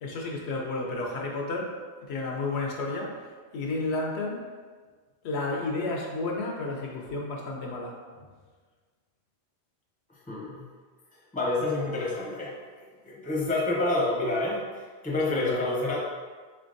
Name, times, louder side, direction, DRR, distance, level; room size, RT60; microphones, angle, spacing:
voice 1, 0.0-1.8 2.1-3.2 3.5-4.5 5.2-8.2 15.3-15.7, left 2 dB, 80° left, 0 dB, 0.9 m, -32 dB
voice 2, 10.3-10.6 11.3-12.5 13.1-16.0, left 2 dB, 10° left, -5 dB, 0.6 m, -28 dB
3.8 x 3.4 x 2.6 m, 1.5 s
omnidirectional pair, 1.1 m